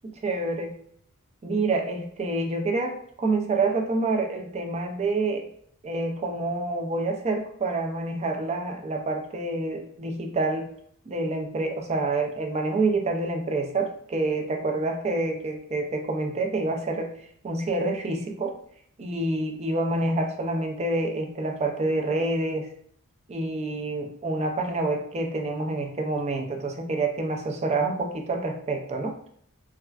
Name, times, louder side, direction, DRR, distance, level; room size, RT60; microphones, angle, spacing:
voice 1, 0.2-0.7 1.4-5.4 5.8-10.7 11.1-17.1 17.4-18.5 19.0-22.7 23.3-29.2, right 2 dB, 30° right, 3 dB, 0.4 m, -27 dB
3.3 x 2.3 x 2.3 m, 0.64 s
head